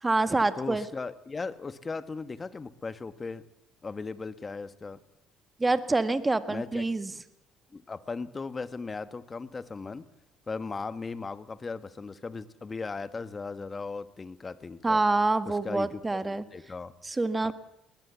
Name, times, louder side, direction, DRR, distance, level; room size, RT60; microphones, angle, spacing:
voice 1, 0.0-0.8 5.6-7.1 14.8-16.4 17.0-17.5, right 2 dB, 15° right, 11 dB, 1.7 m, -26 dB
voice 2, 0.6-3.4 3.8-5.0 6.5-6.8 7.7-10.1 10.5-15.0 15.4-16.9 17.4-17.5, left 4 dB, 25° left, 12 dB, 1.5 m, -37 dB
20.5 x 20.0 x 7.0 m, 0.84 s
supercardioid pair, 85°, 0 cm